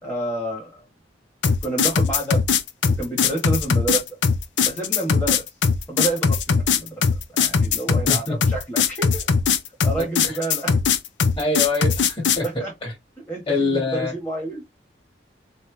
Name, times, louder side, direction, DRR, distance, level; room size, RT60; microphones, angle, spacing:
voice 1, 0.0-0.9 1.6-2.4 2.9-4.0 4.6-5.4 5.9-6.9 7.3-9.3 9.8-10.7 12.4-12.7 13.3-14.6, right 2 dB, 10° left, 1.4 m, -29 dB
sound 1, 1.4-12.5, left 6 dB, 80° left, 0.6 m, -20 dB
voice 2, 8.1-8.4 10.0-10.3 11.4-12.4 12.8-12.9 13.5-14.1, left 3 dB, 30° left, 1.9 m, -25 dB
4.4 x 3.2 x 3.2 m
head